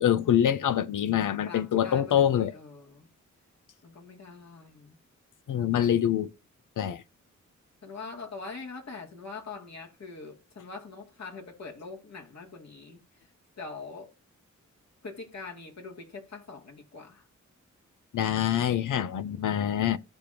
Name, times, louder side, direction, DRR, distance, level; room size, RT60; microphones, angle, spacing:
voice 1, 0.0-2.5 5.5-6.3 6.8-7.0 18.1-20.0, left 10 dB, 80° left, 0.7 m, -25 dB
voice 2, 1.2-3.1 3.8-5.0 5.7-5.9 7.8-13.3 13.6-14.1 15.0-17.2, left 4 dB, 60° left, 2.7 m, -43 dB
15.0 x 5.2 x 2.9 m
cardioid pair, 65°, 30 cm